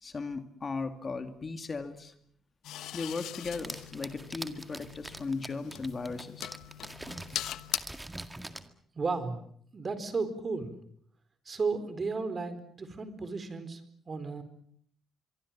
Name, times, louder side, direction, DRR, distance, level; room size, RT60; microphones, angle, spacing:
voice 1, 0.0-2.1 2.9-6.5, left 4 dB, 35° left, 8 dB, 2.5 m, -37 dB
sound 1, 2.6-7.8, left 13 dB, 85° left, 1.1 m, -41 dB
sound 2, 3.4-8.7, right 1 dB, 10° right, 2.0 m, -44 dB
voice 2, 8.9-9.4 9.7-10.8 11.5-13.8 14.1-14.4, right 4 dB, 35° right, 11 dB, 4.3 m, -34 dB
25.0 x 24.0 x 7.5 m, 0.64 s
cardioid pair, 90°, 0 cm